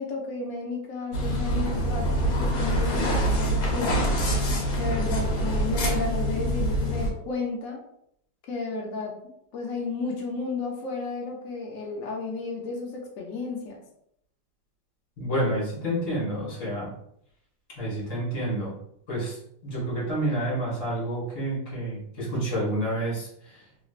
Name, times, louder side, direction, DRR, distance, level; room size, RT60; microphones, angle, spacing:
voice 1, 0.0-4.0 4.8-7.8 8.5-9.2 9.5-13.8, left 3 dB, 75° left, -1 dB, 0.7 m, -33 dB
sound 1, 1.1-7.1, equal, 60° left, 1.1 m, -25 dB
voice 2, 15.2-16.9 17.8-18.8 19.1-19.4 19.6-23.6, right 1 dB, 40° left, -5 dB, 1.8 m, -29 dB
3.2 x 3.0 x 2.4 m, 0.72 s
omnidirectional pair, 2.2 m